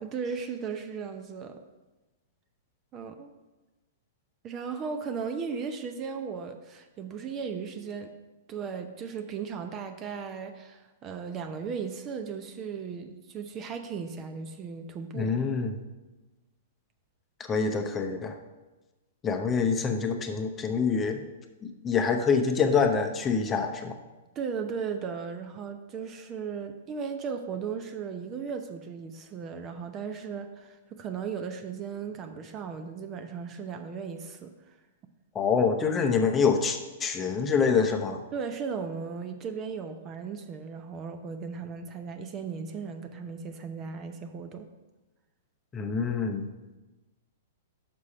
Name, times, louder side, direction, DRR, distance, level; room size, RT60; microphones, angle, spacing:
voice 1, 0.0-1.6 2.9-3.3 4.4-8.1 8.5-15.3 24.4-34.5 38.3-44.7, right 6 dB, 30° right, 7 dB, 0.6 m, -36 dB
voice 2, 15.1-15.7 17.5-18.3 19.2-21.2 21.6-24.0 35.3-38.2 45.7-46.5, left 5 dB, 20° left, 5 dB, 0.7 m, -26 dB
6.1 x 4.8 x 5.6 m, 1.1 s
hypercardioid pair, 120°, 0 cm